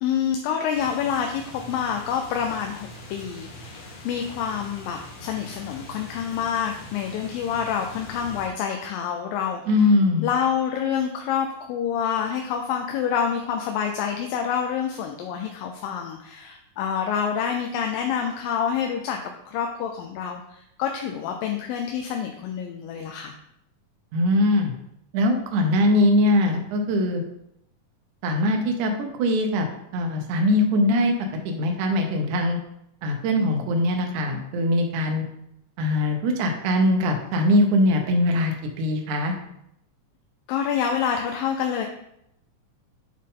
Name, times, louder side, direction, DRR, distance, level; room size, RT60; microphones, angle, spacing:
voice 1, 0.0-9.9 10.2-19.2 19.5-23.3 40.5-41.9, left 8 dB, 85° left, 3 dB, 2.3 m, -27 dB
sound 1, 0.7-8.5, left 1 dB, 60° left, 1.9 m, -42 dB
voice 2, 9.7-10.3 24.1-24.7 25.1-27.2 28.2-28.9 29.2-29.7 29.9-31.1 31.5-32.6 33.0-35.2 35.8-39.3, left 1 dB, 70° right, 3 dB, 2.2 m, -21 dB
8.6 x 3.6 x 3.7 m, 0.78 s
omnidirectional pair, 3.9 m